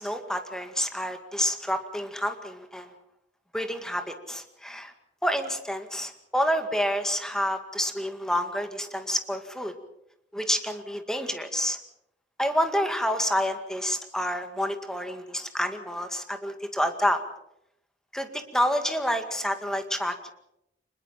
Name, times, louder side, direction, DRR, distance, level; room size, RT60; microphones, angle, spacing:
voice 1, 0.0-2.9 3.5-4.9 5.2-9.7 10.3-11.8 12.4-17.2 18.1-20.3, equal, 5° left, 7 dB, 2.0 m, -28 dB
25.5 x 20.5 x 5.8 m, 0.80 s
head